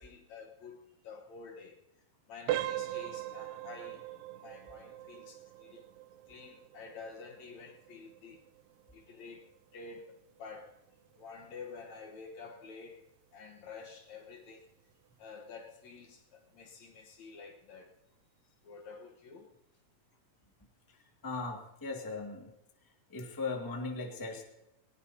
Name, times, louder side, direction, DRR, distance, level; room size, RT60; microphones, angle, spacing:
voice 1, 0.0-1.8 2.3-5.9 6.3-8.5 8.9-14.7 15.2-18.0 18.6-19.5, left 4 dB, 60° left, 2.1 m, -50 dB
sound 1, 2.5-13.1 13.5-13.7 14.3-14.4 14.9-15.1, right 14 dB, 80° right, 2.2 m, -42 dB
voice 2, 20.9-22.5 22.8-24.4, left 3 dB, 10° left, 1.0 m, -39 dB
19.5 x 19.5 x 2.8 m
omnidirectional pair, 4.1 m